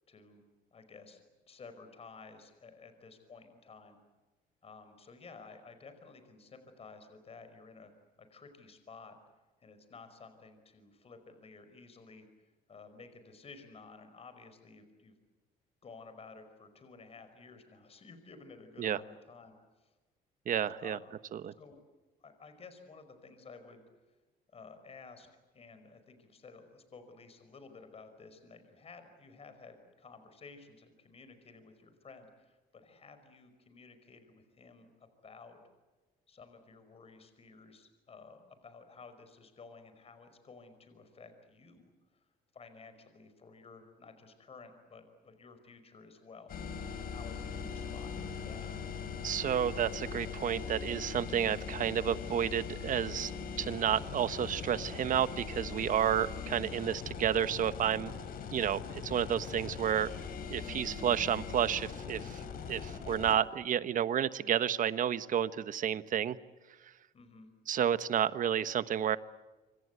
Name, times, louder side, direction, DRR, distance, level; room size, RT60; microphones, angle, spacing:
voice 1, 0.1-0.4 0.7-1.2 1.5-4.0 4.6-7.9 8.2-9.2 9.6-12.3 12.7-15.2 15.8-19.9 20.8-21.1 21.6-21.8 22.2-23.8 24.5-25.3 25.5-34.9 35.2-35.6 36.3-42.2 42.5-46.6 47.0-48.8 63.0-63.4 67.1-67.5, left 4 dB, 35° left, 9 dB, 5.1 m, -53 dB
voice 2, 20.5-21.0 21.3-21.5 49.2-53.3 53.6-58.1 58.5-60.1 60.5-62.4 62.7-66.4 67.7-69.2, right 9 dB, 50° right, 14 dB, 1.2 m, -31 dB
sound 1, 46.5-63.3, left 6 dB, 60° left, 4.3 m, -41 dB
26.0 x 25.5 x 8.1 m, 1.2 s
cardioid pair, 110°, 17 cm